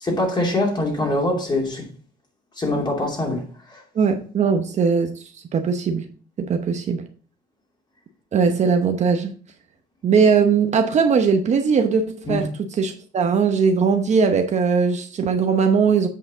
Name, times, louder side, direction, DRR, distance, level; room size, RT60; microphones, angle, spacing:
voice 1, 0.0-1.8 2.6-3.4 3.7-3.8 12.3-12.4, left 1 dB, 25° left, 2.7 m, -23 dB
voice 2, 3.9-5.1 5.5-6.1 6.4-7.1 8.3-9.3 10.0-12.0 12.3-16.1, right 5 dB, 45° right, 0.9 m, -19 dB
8.3 x 4.8 x 3.9 m
cardioid pair, 110°, 17 cm